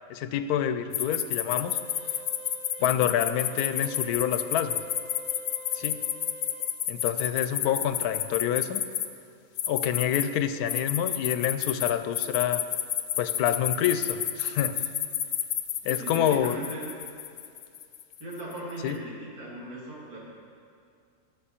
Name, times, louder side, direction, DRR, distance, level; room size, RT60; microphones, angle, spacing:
voice 1, 0.1-1.8 2.8-4.8 5.7-6.0 6.9-8.8 9.7-12.6 13.2-14.9 15.8-16.6 18.8-19.0, left 10 dB, 90° left, 11 dB, 1.1 m, -27 dB
sound 1, 0.9-9.1 9.6-10.2 10.7-18.5, left 11 dB, 70° left, 0.9 m, -30 dB
sound 2, 1.5-6.6, right 1 dB, 10° left, 0.5 m, -45 dB
voice 2, 15.9-16.9 18.2-20.2, right 1 dB, 90° right, -6 dB, 3.1 m, -38 dB
16.5 x 6.2 x 4.3 m, 2.3 s
omnidirectional pair, 1.6 m